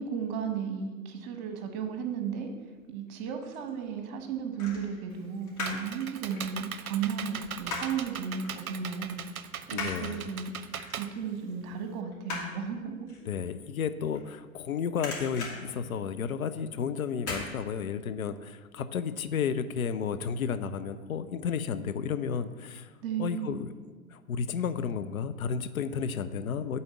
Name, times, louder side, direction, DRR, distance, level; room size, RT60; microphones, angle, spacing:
voice 1, 0.0-2.5 2.9-9.2 9.7-10.6 11.0-13.1 23.0-23.6, right 7 dB, 40° right, 6 dB, 1.3 m, -34 dB
sound 1, 3.1-3.7 4.6-5.9 6.2-8.1 8.4-8.6 9.0-14.6 14.9-16.6 17.2-17.5 17.9-18.0, left 3 dB, 35° left, 2.6 m, -39 dB
Computer keyboard, 5.1-12.0, right 8 dB, 75° right, 0.6 m, -40 dB
voice 2, 9.7-10.2 13.3-22.9 23.2-23.7 24.1-26.8, left 7 dB, 75° left, 11 dB, 0.6 m, -32 dB
8.5 x 4.2 x 6.9 m, 1.4 s
figure-of-eight pair, 100°, 43 cm